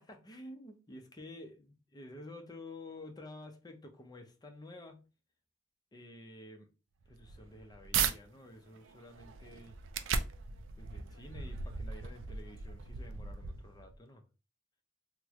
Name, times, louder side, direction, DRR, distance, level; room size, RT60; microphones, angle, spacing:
voice 1, 0.0-5.0 5.9-6.7 7.1-9.8 10.8-14.2, left 1 dB, 20° left, 0.5 m, -50 dB
sound 1, 7.0-8.2 8.7-14.0, right 6 dB, 65° right, 0.4 m, -37 dB
3.0 x 2.1 x 3.4 m
head